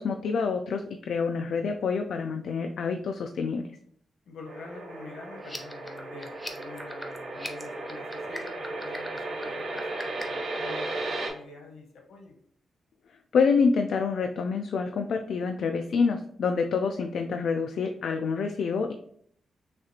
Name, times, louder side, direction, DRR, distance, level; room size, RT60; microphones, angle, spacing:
voice 1, 0.0-3.7 13.3-18.9, left 5 dB, 70° left, 4 dB, 0.3 m, -27 dB
voice 2, 4.2-12.4, left 3 dB, 85° left, 2 dB, 1.1 m, -46 dB
sound 1, 4.5-11.3, right 2 dB, 80° right, 1.3 m, -35 dB
sound 2, 5.4-10.4, left 1 dB, 5° left, 0.5 m, -41 dB
6.1 x 2.4 x 2.9 m, 0.63 s
wide cardioid pair, 160°, 0 cm